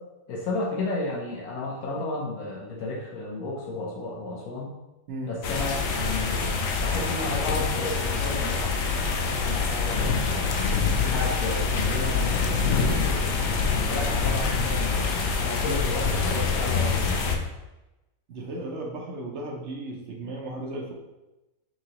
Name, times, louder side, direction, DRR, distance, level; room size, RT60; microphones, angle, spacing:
voice 1, 0.3-4.7 5.3-8.8 9.3-10.7 11.1-13.2 13.8-17.2, left 2 dB, 80° left, -2 dB, 1.3 m, -33 dB
sound 1, 5.4-17.4, left 4 dB, 65° left, 0.7 m, -25 dB
voice 2, 18.3-20.9, right 1 dB, 60° right, 0 dB, 0.9 m, -35 dB
6.0 x 2.8 x 2.8 m, 1.0 s
omnidirectional pair, 1.5 m